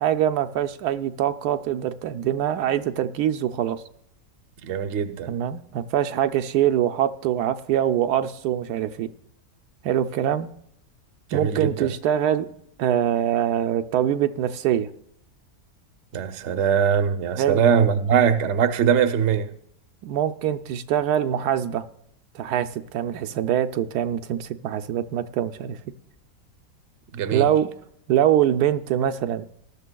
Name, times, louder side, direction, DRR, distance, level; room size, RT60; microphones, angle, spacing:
voice 1, 0.0-3.8 5.3-9.1 9.8-10.5 11.3-12.5 12.8-14.9 17.4-17.6 20.0-21.8 22.3-25.9 27.3-27.7 28.1-29.4, right 10 dB, 85° right, 1.1 m, -24 dB
voice 2, 4.6-5.3 11.3-11.9 16.1-19.5 27.1-27.5, right 7 dB, 60° right, 0.9 m, -21 dB
19.0 x 12.0 x 2.3 m
omnidirectional pair, 1.6 m